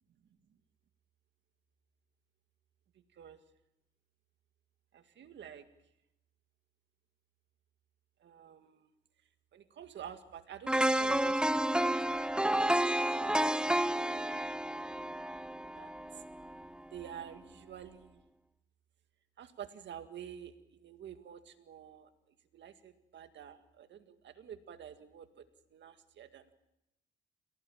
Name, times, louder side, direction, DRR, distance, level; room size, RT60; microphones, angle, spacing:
voice 1, 4.9-5.7 8.2-8.9 9.5-14.7 15.8-16.2 16.9-18.2 19.4-22.1 22.5-25.4 25.7-26.5, right 9 dB, 65° right, 8 dB, 2.0 m, -50 dB
sound 1, 10.7-16.7 17.1-17.2, right 1 dB, 5° right, 0.8 m, -31 dB
28.5 x 17.0 x 7.3 m, 0.88 s
cardioid pair, 90°, 20 cm